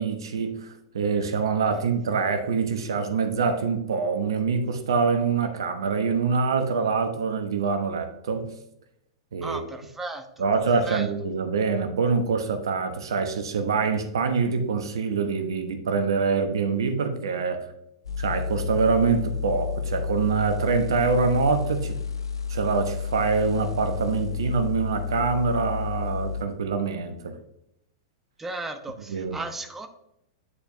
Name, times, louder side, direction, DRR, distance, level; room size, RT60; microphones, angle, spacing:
voice 1, 0.0-8.5 9.3-9.6 10.4-17.6 18.2-22.0 22.5-27.4 29.1-29.4, right 5 dB, 70° right, 7 dB, 0.9 m, -25 dB
voice 2, 9.4-11.1 28.4-29.9, right 2 dB, 10° right, 6 dB, 0.8 m, -36 dB
sound 1, 18.0-26.4, left 6 dB, 85° left, 0.7 m, -31 dB
9.7 x 4.4 x 2.6 m, 0.80 s
figure-of-eight pair, 100°, 2 cm